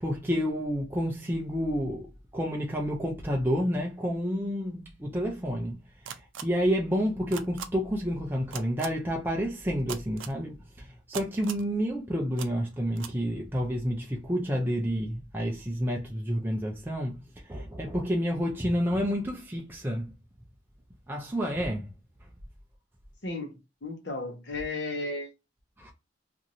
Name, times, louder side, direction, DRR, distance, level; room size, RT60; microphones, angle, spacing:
voice 1, 0.0-2.1 2.3-5.8 6.4-17.1 17.5-20.1 21.1-21.9 25.8-25.9, equal, 10° right, 0.4 m, -29 dB
sound 1, 6.1-6.4 7.3-7.7 8.5-8.9 9.9-10.3 11.1-11.7 12.4-12.5 13.0-13.1, right 8 dB, 80° right, 0.4 m, -38 dB
voice 2, 23.2-23.6 23.8-25.3, left 2 dB, 60° left, 0.8 m, -34 dB
2.9 x 2.6 x 2.5 m
head